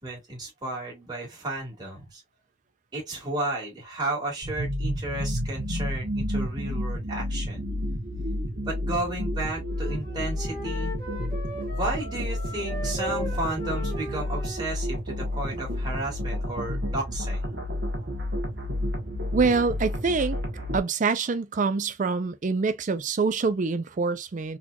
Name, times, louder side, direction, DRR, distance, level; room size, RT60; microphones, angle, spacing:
voice 1, 0.0-2.2 2.9-7.6 8.7-10.9 11.7-17.5, right 2 dB, 20° right, 1.7 m, -33 dB
sound 1, 4.4-20.8, left 1 dB, 60° right, 1.2 m, -30 dB
Wind instrument woodwind instrument, 9.6-14.9, left 1 dB, 15° left, 1.1 m, -38 dB
voice 2, 19.3-20.4 20.7-24.6, right 4 dB, 40° right, 0.4 m, -25 dB
4.0 x 2.9 x 2.2 m
head